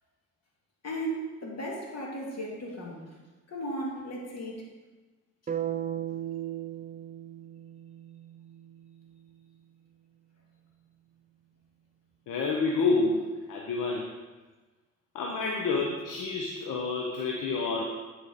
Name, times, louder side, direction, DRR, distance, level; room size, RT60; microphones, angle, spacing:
voice 1, 0.8-3.0 3.5-4.7, right 1 dB, 50° left, -2 dB, 2.5 m, -35 dB
sound 1, 5.5-9.5, right 11 dB, 25° right, 0.5 m, -37 dB
voice 2, 12.3-14.1 15.1-17.8, left 3 dB, 70° left, -1 dB, 1.0 m, -29 dB
10.0 x 4.8 x 4.2 m, 1.3 s
supercardioid pair, 50°, 33 cm